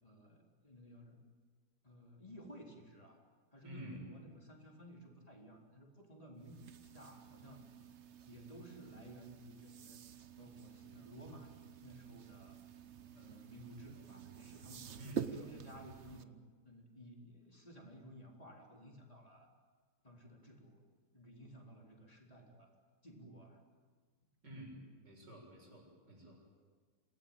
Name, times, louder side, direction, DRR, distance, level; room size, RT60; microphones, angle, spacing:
voice 1, 0.0-1.2 1.8-3.2 3.5-7.7 8.3-10.0 10.4-11.5 11.8-12.6 13.1-14.9 15.3-16.4 16.6-19.5 20.0-22.7 23.0-23.6, equal, 20° left, 0 dB, 4.0 m, -55 dB
voice 2, 3.6-4.1 15.0-15.4 24.4-24.8 25.0-26.5, right 1 dB, 90° right, 0 dB, 7.8 m, -50 dB
sound 1, 6.4-16.2, right 7 dB, 50° right, 1.1 m, -49 dB
27.0 x 19.0 x 9.1 m, 1.5 s
omnidirectional pair, 1.8 m